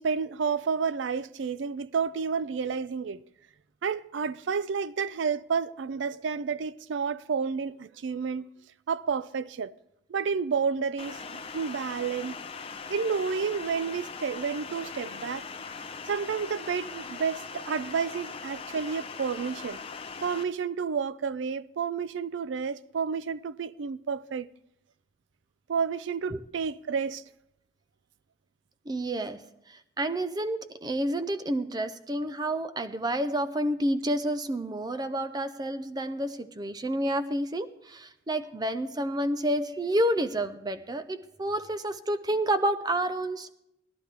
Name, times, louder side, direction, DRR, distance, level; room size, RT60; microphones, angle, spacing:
voice 1, 0.0-3.2 3.8-8.5 8.9-9.7 10.1-12.4 12.9-15.4 16.1-19.8 20.2-24.5 25.7-27.2, right 6 dB, 80° right, 0.4 m, -30 dB
sound 1, 11.0-20.4, left 5 dB, 30° left, 0.5 m, -40 dB
voice 2, 28.9-43.5, right 1 dB, 20° right, 0.4 m, -29 dB
17.5 x 12.0 x 3.3 m
head